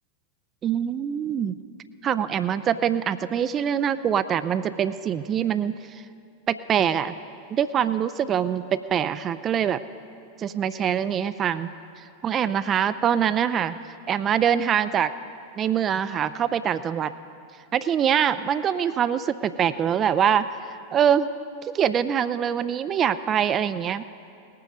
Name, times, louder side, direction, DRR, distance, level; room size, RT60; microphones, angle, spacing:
voice 1, 0.6-1.6 2.0-6.0 6.5-7.1 7.5-9.8 10.4-11.7 12.0-13.8 14.1-15.1 15.6-17.1 17.7-21.3 21.6-24.0, right 8 dB, 25° right, 13 dB, 0.4 m, -24 dB
19.0 x 9.2 x 5.1 m, 2.5 s
figure-of-eight pair, 90°, 0 cm